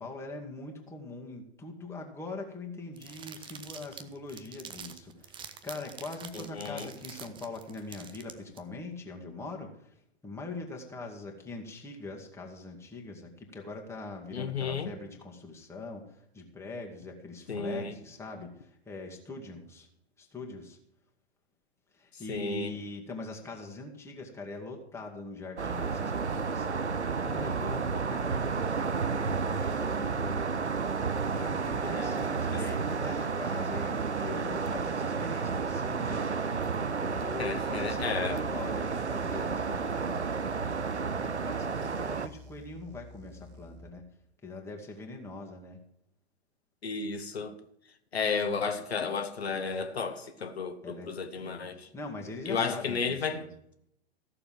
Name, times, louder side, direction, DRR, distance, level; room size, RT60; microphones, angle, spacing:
voice 1, 0.0-9.9 10.2-19.9 20.2-20.8 21.9-30.5 31.3-36.4 37.0-40.3 41.0-44.0 44.4-45.8 50.8-53.5, left 3 dB, 10° left, 2.2 m, -42 dB
sound 1, 3.0-8.6, right 7 dB, 15° right, 0.8 m, -46 dB
voice 2, 6.3-6.9 14.3-14.9 17.5-17.9 22.3-22.7 31.8-32.2 32.5-32.6 37.4-38.4 46.8-47.6 48.1-51.9 52.4-53.4, left 5 dB, 70° left, 1.5 m, -33 dB
sound 2, 25.6-42.3, right 5 dB, 85° right, 0.8 m, -31 dB
sound 3, 37.0-43.9, left 1 dB, 30° right, 1.6 m, -50 dB
15.0 x 6.9 x 7.7 m
figure-of-eight pair, 110°, 33 cm